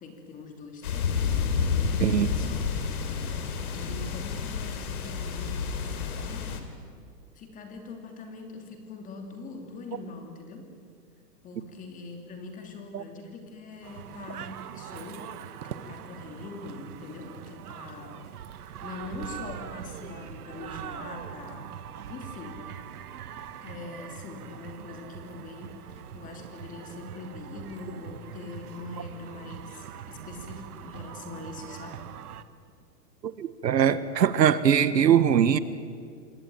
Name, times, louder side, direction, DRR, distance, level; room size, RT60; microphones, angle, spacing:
voice 1, 0.0-1.3 2.1-2.7 3.2-6.5 7.3-10.7 11.4-18.2 18.8-21.7 22.1-22.6 23.6-32.1, left 3 dB, 15° left, 4 dB, 2.8 m, -43 dB
sound 1, 0.8-6.6, left 5 dB, 60° left, 3.5 m, -29 dB
sound 2, 13.8-32.4, right 9 dB, 60° right, 1.6 m, -42 dB
voice 2, 33.2-35.6, right 9 dB, 80° right, 14 dB, 1.6 m, -22 dB
27.0 x 21.0 x 9.3 m, 2.2 s
hypercardioid pair, 155°, 50 cm